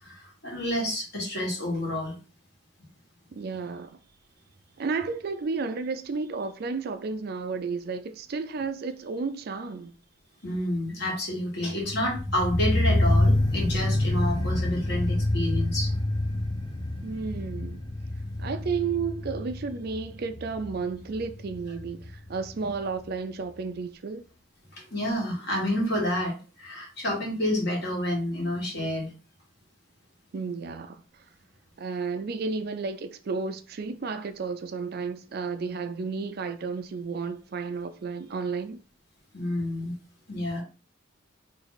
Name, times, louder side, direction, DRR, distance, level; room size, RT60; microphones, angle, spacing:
voice 1, 0.0-2.2 10.4-15.9 24.7-29.1 39.3-39.9 40.3-40.6, left 1 dB, 55° left, 1.6 m, -29 dB
voice 2, 3.3-4.0 4.8-9.9 17.0-17.8 18.4-24.2 30.3-31.0 31.8-38.8, right 4 dB, 50° right, 0.4 m, -32 dB
sound 1, 11.8-22.8 23.1-23.2, left 1 dB, 20° left, 0.6 m, -27 dB
3.1 x 2.5 x 4.0 m
head